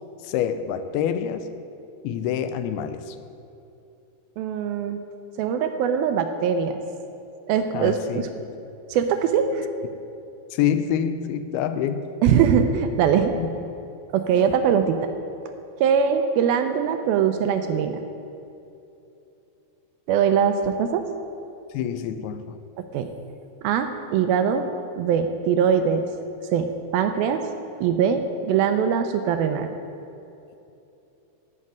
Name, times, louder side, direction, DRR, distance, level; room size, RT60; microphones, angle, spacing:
voice 1, 0.2-1.5 2.0-3.2 7.7-8.2 10.5-12.1 13.4-13.6 14.3-14.4 21.7-22.6, left 9 dB, 80° left, 10 dB, 2.4 m, -26 dB
voice 2, 4.4-5.0 5.4-6.8 7.5-8.2 8.9-9.7 12.2-13.3 14.1-15.1 15.8-18.0 20.1-21.0 22.9-23.1 23.6-24.6 25.0-26.0 26.5-26.7 26.9-27.4 27.8-29.7, right 7 dB, 80° right, 7 dB, 2.3 m, -22 dB
12.5 x 6.6 x 9.1 m, 2.8 s
omnidirectional pair, 4.6 m